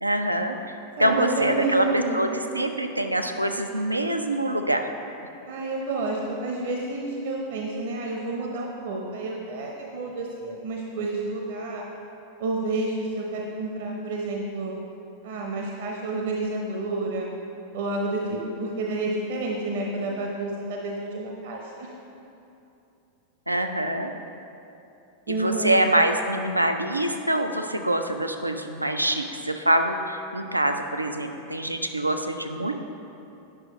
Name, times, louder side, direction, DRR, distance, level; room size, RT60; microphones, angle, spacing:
voice 1, 0.0-0.6 1.0-2.3 2.5-4.9 23.5-24.1 25.3-32.8, right 1 dB, 85° right, 6 dB, 0.4 m, -25 dB
voice 2, 1.0-2.2 5.5-11.9 12.4-14.7 15.2-17.3 17.7-21.9 25.3-25.8, right 2 dB, 55° right, -1 dB, 0.9 m, -29 dB
8.9 x 6.0 x 3.9 m, 2.8 s
figure-of-eight pair, 90°, 0 cm